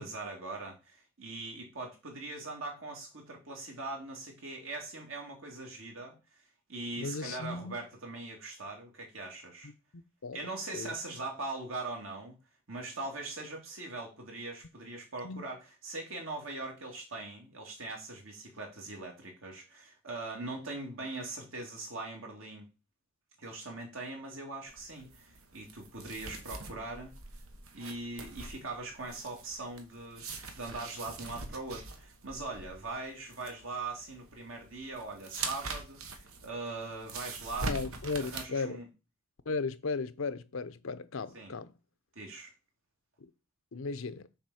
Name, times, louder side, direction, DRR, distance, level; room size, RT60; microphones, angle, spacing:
voice 1, 0.0-6.4 6.7-9.7 10.3-12.4 12.7-22.7 23.4-27.2 27.7-37.7 38.2-38.9 41.3-41.5 42.1-42.5, right 2 dB, 70° right, 2.7 m, -41 dB
voice 2, 7.0-7.8 9.6-10.4 10.7-10.9 15.2-15.4 37.7-38.8 39.5-41.7 43.2-43.3 43.7-44.3, left 4 dB, 75° left, 0.7 m, -36 dB
sound 1, 24.7-38.4, right 3 dB, 85° right, 1.2 m, -43 dB
7.1 x 4.1 x 6.4 m
head